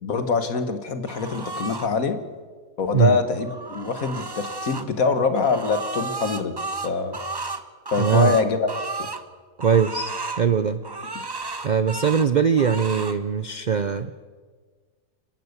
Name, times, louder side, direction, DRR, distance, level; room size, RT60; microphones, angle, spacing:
voice 1, 0.0-2.2 2.8-6.5 6.8-7.2 7.9-8.7 9.0-9.1, left 4 dB, 60° left, 9 dB, 1.9 m, -24 dB
sound 1, 1.1-1.9 3.3-4.8 5.3-9.2 9.6-10.4 10.8-12.3 12.6-13.2, right 3 dB, 20° right, 0.7 m, -33 dB
voice 2, 8.0-8.4 9.6-10.1 10.4-10.8 11.6-14.2, right 7 dB, 60° right, 12 dB, 0.4 m, -21 dB
28.5 x 12.0 x 8.1 m, 1.5 s
omnidirectional pair, 1.7 m